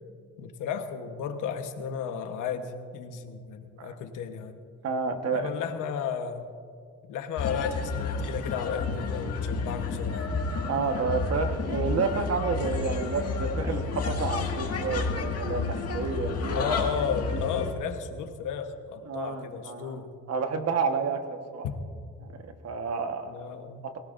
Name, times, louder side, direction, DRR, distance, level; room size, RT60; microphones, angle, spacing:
voice 1, 0.4-4.6 5.3-6.5 7.1-10.3 16.6-20.1 21.6-21.7 23.3-23.8, left 7 dB, 85° left, 7 dB, 1.2 m, -33 dB
voice 2, 4.8-5.5 10.7-16.7 19.1-20.0 20.3-21.6 22.2-23.3 23.8-24.0, right 4 dB, 55° right, 6 dB, 1.4 m, -30 dB
sound 1, 7.4-17.7, left 4 dB, 55° left, 2.0 m, -31 dB
23.5 x 17.0 x 2.6 m, 2.2 s
cardioid pair, 90°, 30 cm